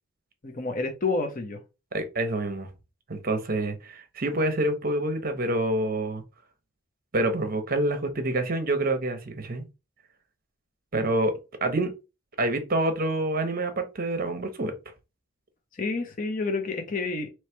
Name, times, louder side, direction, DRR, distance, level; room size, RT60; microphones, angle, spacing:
voice 1, 0.4-1.6 15.7-17.3, left 3 dB, 40° left, 0.8 m, -29 dB
voice 2, 1.9-2.7 3.1-6.2 7.1-9.7 10.9-11.3 11.6-11.9 12.4-14.7, right 2 dB, 40° right, 0.8 m, -27 dB
3.2 x 3.1 x 4.4 m
head